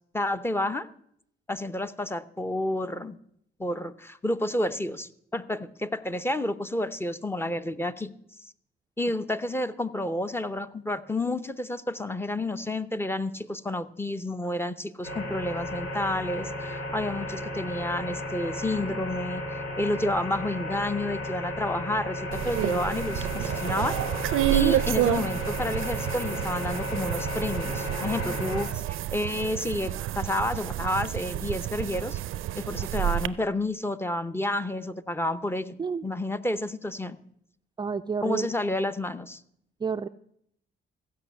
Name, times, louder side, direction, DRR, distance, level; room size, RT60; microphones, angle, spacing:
voice 1, 0.1-0.9 1.5-3.2 3.6-8.1 9.0-24.0 24.5-32.2 32.6-35.7 36.0-37.2 38.2-39.4, left 1 dB, 10° left, 11 dB, 0.7 m, -30 dB
sound 1, 15.0-28.7, left 1 dB, 80° left, 5.8 m, -34 dB
sound 2, 22.3-33.3, right 13 dB, 75° right, 0.5 m, -29 dB
voice 2, 37.8-38.5 39.8-40.1, right 5 dB, 20° right, 9 dB, 0.3 m, -29 dB
15.0 x 5.5 x 8.1 m, 0.71 s
cardioid pair, 80°, 21 cm